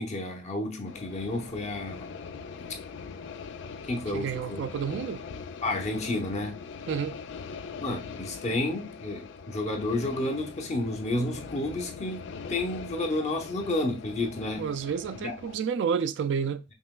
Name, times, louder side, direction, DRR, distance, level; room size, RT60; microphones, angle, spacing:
voice 1, 0.0-2.2 3.9-4.6 5.6-6.6 7.8-14.7 15.2-15.3, left 2 dB, 40° left, 0.8 m, -31 dB
sound 1, 0.8-15.6, left 5 dB, 70° left, 0.4 m, -42 dB
voice 2, 4.1-5.2 6.9-7.2 14.6-16.6, right 7 dB, 70° right, 0.3 m, -30 dB
5.5 x 3.0 x 2.3 m
head